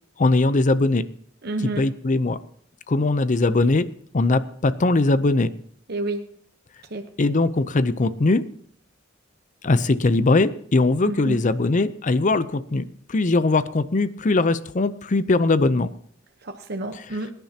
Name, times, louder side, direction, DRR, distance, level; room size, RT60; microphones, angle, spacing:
voice 1, 0.2-1.0 1.8-2.4 2.9-3.9 4.1-5.5 7.2-8.4 9.6-15.9, left 2 dB, 40° left, 14 dB, 0.6 m, -20 dB
voice 2, 1.4-1.8 5.9-6.3 6.9-7.0 11.0-11.4 16.4-17.3, right 2 dB, 55° right, 5 dB, 0.9 m, -29 dB
23.0 x 10.5 x 2.9 m, 0.65 s
head